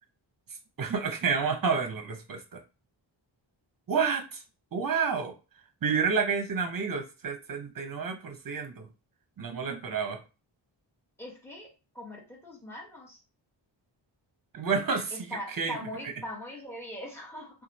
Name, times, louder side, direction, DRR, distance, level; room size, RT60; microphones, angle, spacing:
voice 1, 0.8-2.6 3.9-4.4 4.7-5.3 5.8-8.9 9.4-10.2 14.5-15.8 16.0-16.1, right 5 dB, 45° right, 5 dB, 0.8 m, -29 dB
voice 2, 11.2-13.2 15.1-17.6, left 1 dB, 5° left, -4 dB, 1.2 m, -41 dB
3.0 x 2.3 x 4.0 m, 0.30 s
wide cardioid pair, 125°, 48 cm